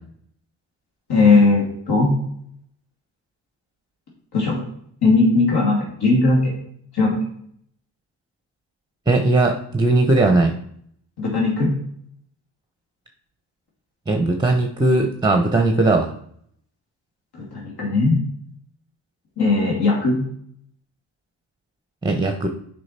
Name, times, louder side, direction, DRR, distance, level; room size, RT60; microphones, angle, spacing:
voice 1, 1.1-2.1 4.3-4.6 5.0-6.5 6.9-7.2 11.2-11.7 17.4-18.2 19.4-20.2, left 3 dB, 50° left, -3 dB, 2.7 m, -18 dB
voice 2, 9.1-10.5 14.1-16.1 22.0-22.5, right 2 dB, 10° right, 4 dB, 1.1 m, -18 dB
6.3 x 5.3 x 4.4 m, 0.65 s
hypercardioid pair, 40°, 50 cm